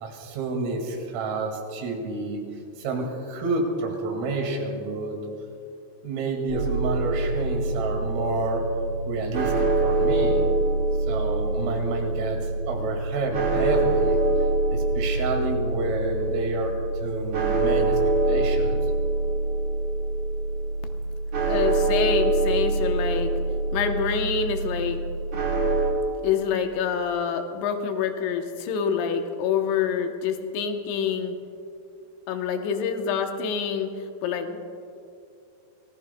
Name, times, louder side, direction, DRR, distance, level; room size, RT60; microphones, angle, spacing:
voice 1, 0.0-2.4 2.8-5.2 6.0-8.7 9.0-10.5 11.1-14.2 14.7-18.0 18.3-18.8, right 3 dB, 80° right, 2 dB, 4.8 m, -29 dB
sound 1, 6.5-25.9, right 2 dB, 55° right, 1.7 m, -25 dB
voice 2, 21.4-23.3 23.7-25.0 26.2-31.3 32.3-33.9 34.2-34.6, left 7 dB, 75° left, 5 dB, 2.9 m, -26 dB
27.0 x 19.0 x 2.2 m, 2.6 s
omnidirectional pair, 5.8 m